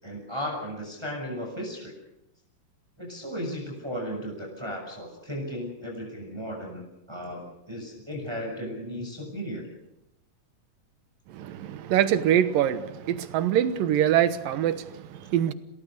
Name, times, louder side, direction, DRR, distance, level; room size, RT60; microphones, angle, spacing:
voice 1, 0.0-1.9 3.0-9.7, equal, 5° right, 6.1 m, -35 dB
voice 2, 11.3-15.5, right 10 dB, 90° right, 2.9 m, -24 dB
28.0 x 18.5 x 6.7 m
omnidirectional pair, 3.8 m